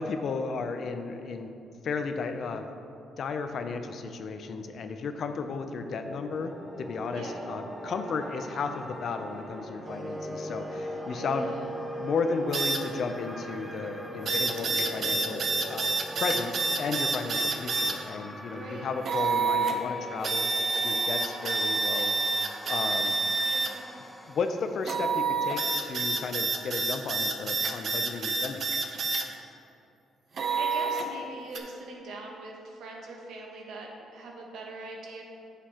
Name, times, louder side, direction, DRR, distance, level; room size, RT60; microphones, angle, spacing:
voice 1, 0.0-1.5 1.8-2.7 3.2-11.5 12.0-15.8 16.2-22.1 22.6-23.2 24.3-28.6, left 4 dB, 60° left, 7 dB, 0.6 m, -34 dB
sound 1, 5.6-25.4, equal, ahead, 0.7 m, -43 dB
voice 2, 7.1-7.6 10.9-11.7 18.4-19.0 23.4-23.9 30.6-35.2, right 2 dB, 80° right, 0 dB, 1.3 m, -42 dB
sound 2, 9.8-17.8, right 1 dB, 25° right, 1.4 m, -40 dB
sound 3, 12.5-12.8 14.3-17.9 19.0-19.8 20.2-23.7 24.9-29.2 30.3-31.1 31.5-31.6, right 3 dB, 55° right, 0.8 m, -28 dB
9.2 x 6.8 x 3.0 m, 2.6 s
cardioid pair, 90°, 0 cm